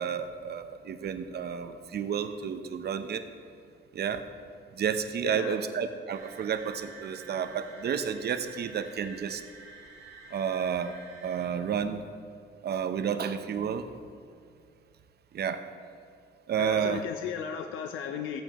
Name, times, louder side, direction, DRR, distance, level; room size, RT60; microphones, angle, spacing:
voice 1, 0.0-3.2 3.9-4.2 4.7-9.4 10.3-10.9 11.2-12.0 12.6-13.8 15.3-15.6 16.5-17.0, right 7 dB, 55° right, 9 dB, 0.7 m, -31 dB
voice 2, 5.2-5.6 16.6-18.4, left 8 dB, 90° left, 6 dB, 0.5 m, -35 dB
sound 1, 6.1-11.5, right 4 dB, 75° right, 2.1 m, -48 dB
15.5 x 8.6 x 3.0 m, 2.2 s
cardioid pair, 90°, 20 cm